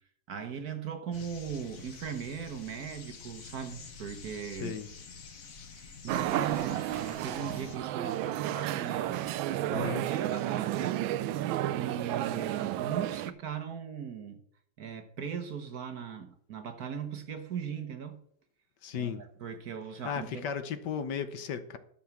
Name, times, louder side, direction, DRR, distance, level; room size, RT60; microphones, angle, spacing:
voice 1, 0.3-4.8 5.7-11.0 11.7-14.4 14.8-18.2 18.9-19.1 19.4-20.4, right 7 dB, 55° right, 1.4 m, -39 dB
sound 1, 1.1-7.8, left 5 dB, 45° left, 1.5 m, -48 dB
voice 2, 4.5-4.9 9.7-10.1 18.8-19.3 20.0-21.8, left 7 dB, 65° left, 1.3 m, -35 dB
sound 2, 6.1-13.3, right 13 dB, 85° right, 1.4 m, -32 dB
11.0 x 7.2 x 5.9 m
omnidirectional pair, 2.1 m